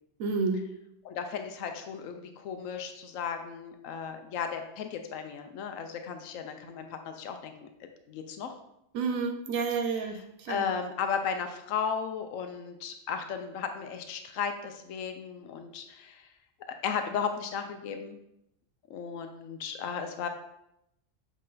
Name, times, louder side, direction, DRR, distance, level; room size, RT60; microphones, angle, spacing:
voice 1, 0.2-0.6 8.9-10.7, right 4 dB, 90° right, 6 dB, 1.0 m, -30 dB
voice 2, 1.0-7.7 8.1-8.5 10.0-10.1 10.5-16.3 16.8-18.2 18.9-20.3, left 6 dB, 85° left, 6 dB, 1.0 m, -35 dB
7.5 x 3.2 x 3.9 m, 0.81 s
omnidirectional pair, 1.3 m